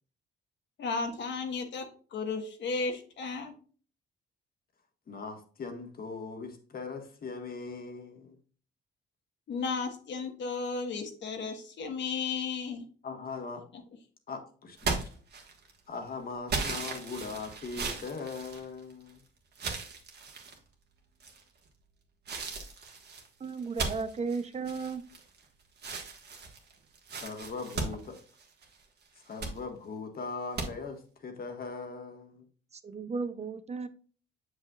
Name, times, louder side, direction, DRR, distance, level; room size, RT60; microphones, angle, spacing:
voice 1, 0.8-3.5 9.5-12.8 13.7-13.8, left 4 dB, 65° left, 1.3 m, -34 dB
voice 2, 5.1-8.4 13.0-13.6 14.3-15.1 15.9-19.2 27.2-28.2 29.2-32.5, left 4 dB, 50° left, 1.5 m, -40 dB
sound 1, 14.8-15.8 16.5-19.1 19.5-20.6 21.2-21.7 22.3-25.4 25.8-28.8 29.2-29.6 30.6-30.7, right 4 dB, 55° right, 1.6 m, -37 dB
voice 3, 23.4-25.0 32.8-33.9, right 4 dB, 35° right, 0.6 m, -34 dB
7.2 x 6.4 x 2.4 m
cardioid pair, 90°, 20 cm